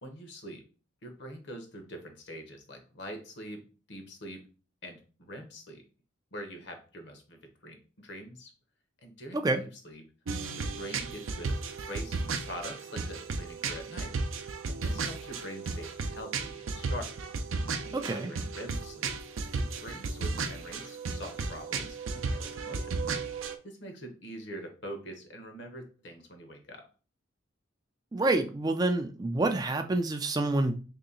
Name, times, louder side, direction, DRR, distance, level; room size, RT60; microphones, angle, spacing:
voice 1, 0.0-0.6 1.0-4.4 4.8-5.8 6.3-8.5 9.0-10.0 10.6-11.6 11.8-14.1 14.7-17.1 17.8-19.2 19.5-23.2 23.6-26.9, equal, 60° left, 0.9 m, -44 dB
sound 1, 10.3-23.5, right 4 dB, 80° right, 0.5 m, -34 dB
voice 2, 17.9-18.3 28.1-30.8, right 2 dB, 20° right, 0.3 m, -28 dB
3.1 x 2.8 x 3.8 m
head